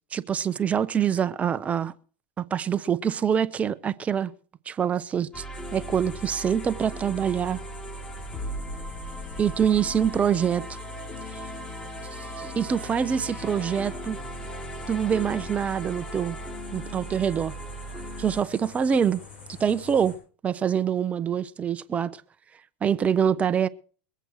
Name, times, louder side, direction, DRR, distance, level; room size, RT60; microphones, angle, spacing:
voice 1, 0.1-1.9 2.4-4.3 4.7-5.4 5.7-7.6 9.4-10.6 11.3-11.4 12.4-14.2 14.9-16.4 16.7-17.5 18.2-19.2 19.6-20.2 20.4-22.1 22.8-23.7, right 8 dB, 20° right, 0.7 m, -25 dB
sound 1, 5.3-18.4, equal, 15° left, 2.3 m, -37 dB
sound 2, 5.5-20.2, left 4 dB, 75° left, 7.6 m, -48 dB
22.5 x 8.0 x 4.7 m
supercardioid pair, 120°, 6 cm